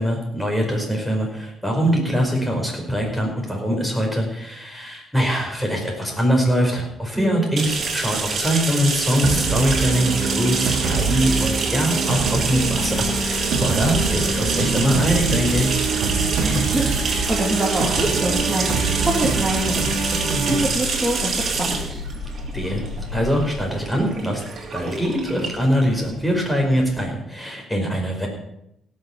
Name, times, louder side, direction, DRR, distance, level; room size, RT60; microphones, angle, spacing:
voice 1, 0.0-15.8 22.5-22.8 23.1-24.4 24.7-28.3, equal, 5° left, 0 dB, 5.1 m, -23 dB
voice 2, 7.1-7.5 16.4-18.7 19.0-19.9 20.2-22.0, right 1 dB, 15° right, -2 dB, 2.5 m, -25 dB
sound 1, 7.6-27.0, right 4 dB, 50° right, 2.8 m, -27 dB
sound 2, 9.2-20.7, right 4 dB, 80° right, 1.7 m, -25 dB
sound 3, 12.1-23.3, left 4 dB, 50° left, 3.1 m, -34 dB
17.0 x 6.6 x 7.1 m, 0.79 s
cardioid pair, 90°, 0 cm